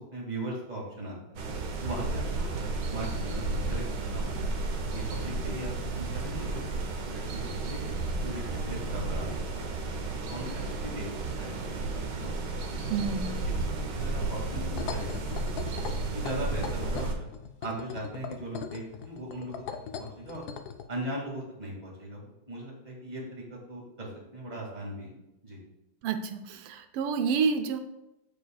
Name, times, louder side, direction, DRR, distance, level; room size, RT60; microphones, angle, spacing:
voice 1, 0.0-1.4 1.8-4.5 4.9-6.6 7.1-7.9 8.2-9.3 9.5-9.7 10.3-11.1 11.4-11.6 12.2-12.3 13.2-15.2 16.1-17.3 17.6-19.6 20.0-20.5 20.9-25.1 25.4-25.6, right 1 dB, 20° right, -3 dB, 2.0 m, -39 dB
sound 1, 1.4-17.2, right 3 dB, 60° right, 1.4 m, -33 dB
voice 2, 12.9-13.4 26.0-27.8, right 5 dB, 90° right, 8 dB, 1.6 m, -29 dB
sound 2, 14.7-20.9, left 7 dB, 80° left, 0.8 m, -39 dB
14.5 x 4.9 x 2.3 m, 0.92 s
omnidirectional pair, 2.4 m